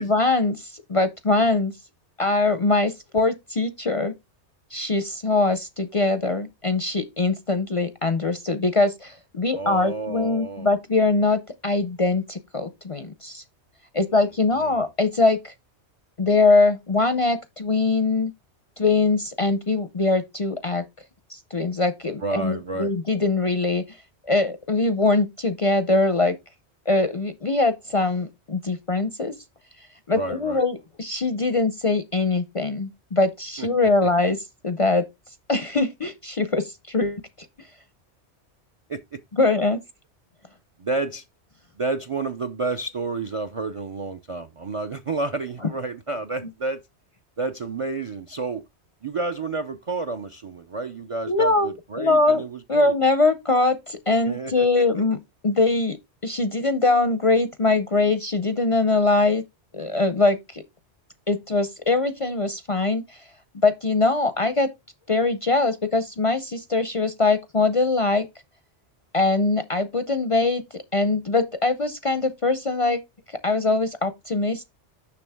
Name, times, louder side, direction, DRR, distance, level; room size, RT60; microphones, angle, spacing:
voice 1, 0.0-1.7 2.2-4.1 4.7-13.4 13.9-15.5 16.2-18.3 18.8-20.8 21.3-23.8 24.3-26.4 26.9-29.3 30.1-34.4 34.6-35.0 35.5-37.2 39.4-39.8 51.3-52.4 52.7-55.2 55.4-56.0 56.2-59.4 59.7-60.6 61.3-63.2 63.6-64.7 65.1-68.3 69.1-70.6 70.9-73.0 73.3-74.6, left 3 dB, 40° left, 0.5 m, -22 dB
voice 2, 9.5-10.8 14.5-14.9 22.2-22.9 30.1-30.6 33.6-33.7 38.9-39.2 40.8-41.2 41.8-46.8 47.4-48.6 49.0-52.9 54.2-54.7, right 3 dB, 45° right, 0.4 m, -30 dB
6.8 x 6.2 x 3.4 m
omnidirectional pair, 1.2 m